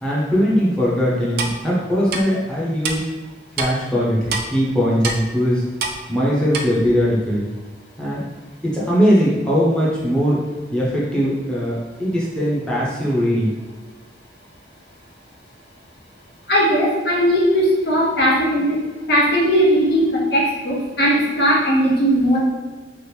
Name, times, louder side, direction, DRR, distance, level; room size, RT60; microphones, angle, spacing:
voice 1, 0.0-3.1 3.6-5.6 6.1-7.5 8.0-8.2 8.6-10.4 10.7-13.5, equal, 5° left, -7 dB, 0.6 m, -20 dB
Clock, 1.4-1.5 2.1-2.2 2.8-3.0 3.6-3.7 4.3-4.4 5.0-5.2 5.8-6.0 6.5-6.6, right 4 dB, 60° right, 0.4 m, -24 dB
voice 2, 16.5-18.8 19.1-22.4, equal, 65° left, -4 dB, 0.9 m, -18 dB
2.9 x 2.5 x 3.3 m, 1.3 s
head